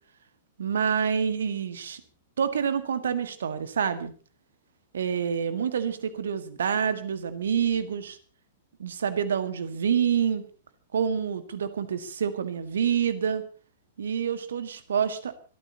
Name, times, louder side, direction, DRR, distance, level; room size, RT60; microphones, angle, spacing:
voice 1, 0.6-2.0 2.4-4.1 4.9-8.2 8.8-10.4 10.9-13.4 14.0-15.3, right 7 dB, 60° right, 11 dB, 1.8 m, -27 dB
25.5 x 13.5 x 3.0 m, 0.39 s
figure-of-eight pair, 105°, 0 cm